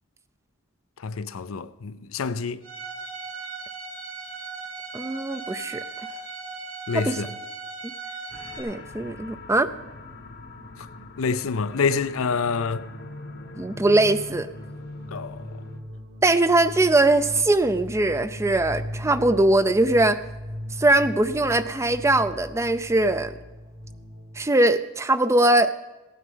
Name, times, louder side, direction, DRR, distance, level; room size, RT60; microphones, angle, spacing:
voice 1, 1.0-2.6 6.9-7.3 11.2-12.9 15.1-15.5, left 5 dB, 80° left, 0.5 m, -27 dB
Bowed string instrument, 2.6-8.6, right 4 dB, 80° right, 2.4 m, -37 dB
voice 2, 4.9-5.8 6.9-7.2 7.8-7.9 8.6-9.7 13.6-14.5 16.2-20.2 20.8-23.3 24.4-25.7, right 2 dB, 15° right, 0.4 m, -21 dB
sound 1, 8.3-15.8, left 2 dB, 50° left, 0.9 m, -41 dB
sound 2, 11.2-11.3 11.6-24.4, equal, 65° right, 2.7 m, -39 dB
16.5 x 9.3 x 5.5 m
head